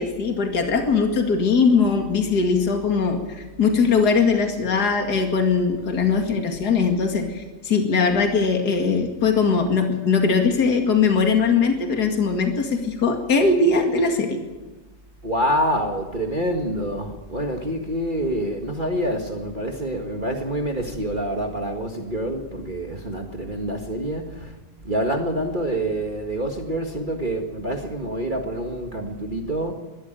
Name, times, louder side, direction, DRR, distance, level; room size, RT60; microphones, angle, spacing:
voice 1, 0.0-14.4, left 4 dB, 60° left, 4 dB, 2.8 m, -20 dB
voice 2, 15.2-24.6 24.8-29.7, right 1 dB, 30° right, 3 dB, 1.7 m, -26 dB
22.0 x 13.0 x 9.0 m, 1.2 s
omnidirectional pair, 2.0 m